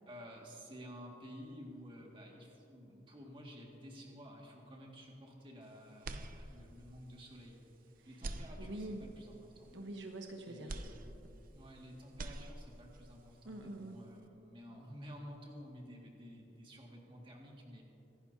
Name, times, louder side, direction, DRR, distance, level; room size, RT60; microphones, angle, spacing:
voice 1, 0.1-7.6 8.1-9.7 10.4-17.8, equal, 30° right, -1 dB, 2.0 m, -52 dB
sound 1, 6.0-6.9 7.4-7.5 8.1-9.2 10.7-11.8 12.0-13.0, right 2 dB, 50° right, 0.7 m, -45 dB
voice 2, 8.6-9.1 9.7-10.7 13.4-14.0, right 1 dB, 85° right, 3 dB, 1.1 m, -45 dB
24.5 x 11.5 x 2.8 m, 3.0 s
head